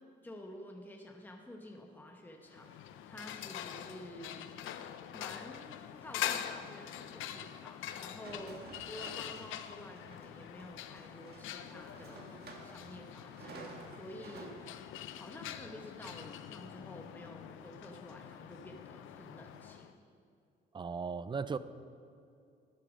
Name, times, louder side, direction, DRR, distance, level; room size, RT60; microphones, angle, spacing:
voice 1, 0.2-4.9 5.1-8.6 8.9-13.5 13.9-14.5 15.1-19.9, left 1 dB, 10° left, 2 dB, 0.9 m, -50 dB
sound 1, 2.5-19.9, left 11 dB, 85° left, 0.5 m, -44 dB
sound 2, 8.2-13.0 13.3-14.6 15.2-15.3 15.8-16.2, right 3 dB, 55° right, 1.5 m, -51 dB
voice 2, 20.7-21.6, right 5 dB, 25° right, 15 dB, 0.4 m, -36 dB
12.5 x 6.6 x 5.1 m, 2.4 s
cardioid pair, 90°, 20 cm